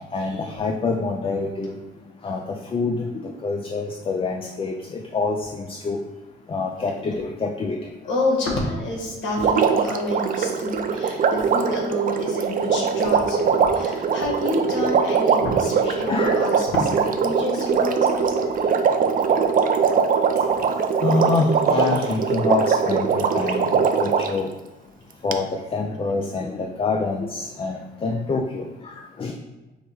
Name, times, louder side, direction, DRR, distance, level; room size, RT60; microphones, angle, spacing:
voice 1, 0.0-1.8 2.2-6.0 6.5-7.9 14.6-14.9 16.1-16.6 20.4-20.5 21.0-24.5 25.2-29.3, left 3 dB, 30° left, 3 dB, 0.4 m, -26 dB
voice 2, 8.1-18.5, left 1 dB, 75° left, -2 dB, 1.3 m, -28 dB
Water, 9.4-24.4 25.3-25.4, right 6 dB, 45° right, 0.4 m, -21 dB
4.8 x 2.1 x 4.3 m, 1.1 s
cardioid pair, 90°, 20 cm